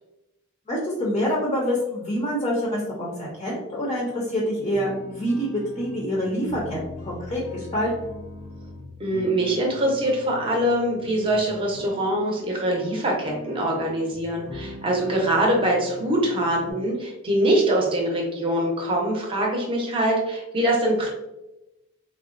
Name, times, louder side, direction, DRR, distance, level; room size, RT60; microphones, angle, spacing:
voice 1, 0.7-6.8 7.0-7.9, equal, 25° left, -4 dB, 0.5 m, -26 dB
sound 1, 4.7-16.7, equal, 85° left, 0.8 m, -41 dB
voice 2, 9.0-21.1, right 1 dB, 25° right, -1 dB, 0.7 m, -23 dB
3.6 x 2.0 x 2.4 m, 0.95 s
head